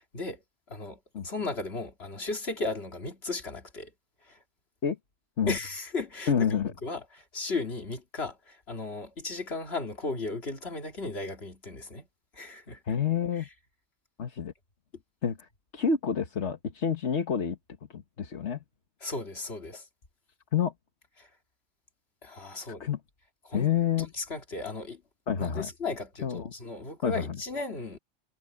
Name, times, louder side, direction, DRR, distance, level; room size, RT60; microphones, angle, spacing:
voice 1, 0.7-3.9 4.2-4.4 5.5-12.1 12.3-12.8 13.4-13.5 14.9-15.0 19.0-19.9 21.2-21.3 22.2-22.9 23.4-23.7 24.0-25.0 25.4-28.0, left 3 dB, 65° left, 2.7 m, -36 dB
voice 2, 6.3-6.7 12.8-13.5 14.2-14.5 15.2-17.6 17.9-18.6 20.5-20.7 22.5-23.0 23.5-24.1 25.3-25.7 26.2-26.5 27.0-27.4, left 7 dB, 80° left, 1.7 m, -28 dB
omnidirectional pair, 1.2 m